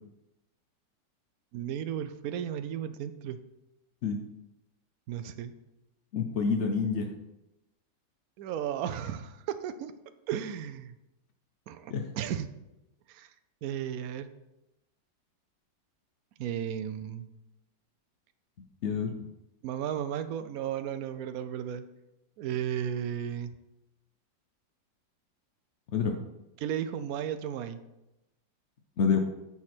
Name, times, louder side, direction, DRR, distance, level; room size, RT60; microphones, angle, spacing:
voice 1, 1.5-3.4 5.1-5.5 8.4-9.9 10.3-10.9 11.7-12.5 13.1-13.3 13.6-14.3 16.4-17.3 19.6-21.8 22.4-23.6 26.6-27.8, right 9 dB, 75° right, 10 dB, 0.8 m, -34 dB
voice 2, 6.1-7.1 11.9-12.0 18.8-19.2 25.9-26.2 29.0-29.2, left 5 dB, 70° left, 4 dB, 0.6 m, -27 dB
9.6 x 4.8 x 4.3 m, 0.92 s
omnidirectional pair, 2.1 m